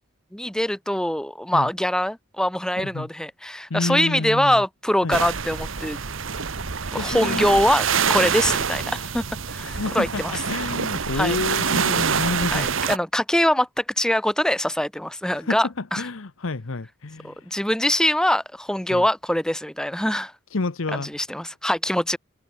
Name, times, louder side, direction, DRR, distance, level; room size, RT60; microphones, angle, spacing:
voice 1, 0.3-6.0 6.9-10.4 11.1-11.4 12.5-16.0 17.2-20.3 20.9-22.2, left 1 dB, 5° left, 0.7 m, -23 dB
voice 2, 2.8-3.1 3.7-4.6 5.0-5.2 7.0-7.5 9.6-12.7 15.3-17.5 18.9-19.0 20.5-21.1, left 3 dB, 75° left, 0.9 m, -29 dB
sound 1, 5.1-13.0, right 6 dB, 70° right, 1.2 m, -26 dB
head